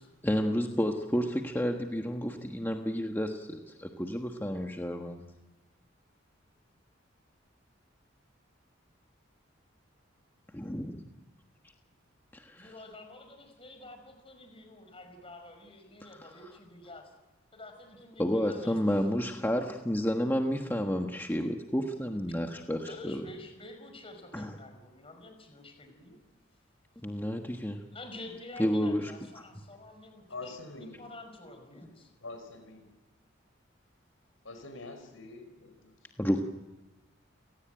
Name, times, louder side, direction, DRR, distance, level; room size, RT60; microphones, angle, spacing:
voice 1, 0.2-5.2 10.5-11.0 12.3-12.7 18.2-23.2 24.3-24.5 27.0-27.8 28.6-29.1 36.2-36.4, equal, 10° left, 1.4 m, -30 dB
voice 2, 12.6-17.1 17.5-18.8 22.7-26.2 27.9-32.1, left 2 dB, 30° left, 5.2 m, -49 dB
voice 3, 30.3-31.0 32.2-32.9 34.4-36.1, left 3 dB, 80° left, 5.0 m, -45 dB
29.5 x 18.0 x 9.1 m
head